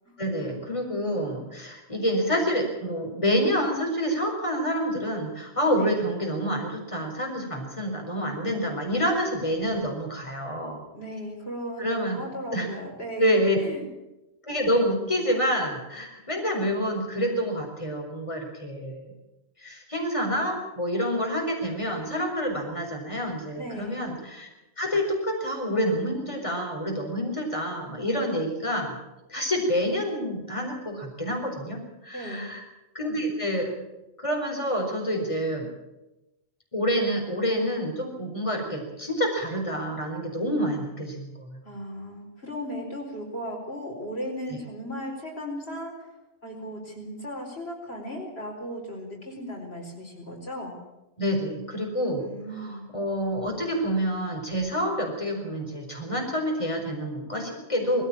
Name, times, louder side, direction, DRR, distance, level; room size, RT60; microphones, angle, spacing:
voice 1, 0.2-10.8 11.8-12.2 12.5-12.7 13.2-13.6 14.5-19.1 19.6-24.5 24.8-29.0 29.3-32.6 32.9-33.7 34.2-35.7 36.7-41.6 51.2-52.3 52.6-58.0, equal, 30° left, 0 dB, 4.7 m, -27 dB
voice 2, 10.9-13.9 23.5-24.0 32.1-32.5 41.6-46.1 46.4-50.8 52.2-52.9, equal, 70° left, 0 dB, 5.0 m, -36 dB
20.5 x 15.5 x 8.8 m, 0.99 s
omnidirectional pair, 1.1 m